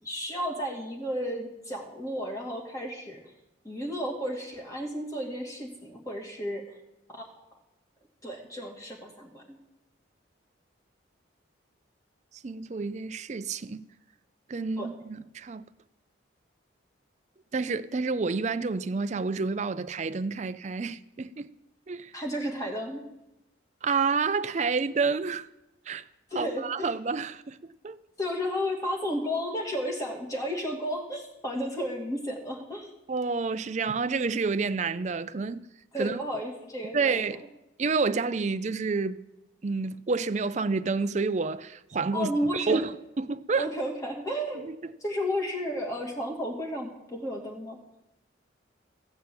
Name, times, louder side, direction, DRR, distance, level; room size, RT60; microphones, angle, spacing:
voice 1, 0.0-3.2 3.6-6.8 7.1-7.3 8.2-9.6 14.8-14.9 22.1-23.0 26.3-26.9 28.2-32.9 35.9-37.2 42.1-42.8 43.6-44.7 45.0-47.8, equal, 15° left, 2.2 m, -33 dB
voice 2, 12.3-13.9 14.5-15.7 17.5-21.5 21.9-22.1 23.8-25.5 25.9-26.1 26.3-27.6 27.8-28.0 33.1-35.7 36.0-36.2 36.9-37.4 37.8-39.2 39.6-43.7 44.5-44.9, right 4 dB, 35° right, 0.4 m, -29 dB
15.5 x 5.8 x 8.6 m
head